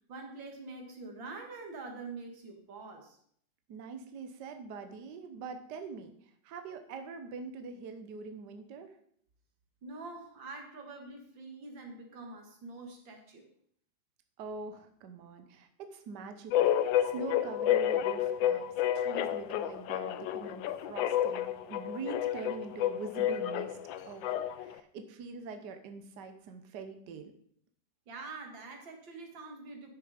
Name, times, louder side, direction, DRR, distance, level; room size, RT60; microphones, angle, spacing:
voice 1, 0.1-3.2 9.8-13.5 28.1-29.9, right 3 dB, 85° right, 3 dB, 2.6 m, -45 dB
voice 2, 3.7-9.0 14.4-18.7 18.9-23.8 24.0-27.3, right 4 dB, 65° right, 7 dB, 1.5 m, -44 dB
sound 1, 16.5-24.7, left 11 dB, 85° left, 1.4 m, -30 dB
11.5 x 6.5 x 5.1 m, 0.65 s
omnidirectional pair, 2.0 m